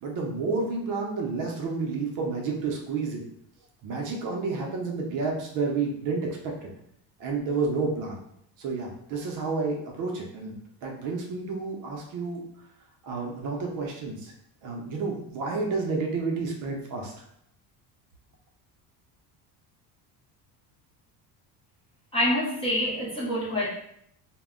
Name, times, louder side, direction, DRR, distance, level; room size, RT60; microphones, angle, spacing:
voice 1, 0.0-3.3 3.8-6.7 7.2-8.2 8.6-12.4 13.0-14.3 14.6-17.2, right 4 dB, 50° right, 0 dB, 0.5 m, -30 dB
voice 2, 22.1-23.7, equal, 15° left, -8 dB, 0.5 m, -26 dB
2.1 x 2.1 x 3.5 m, 0.74 s
cardioid pair, 160°, 43 cm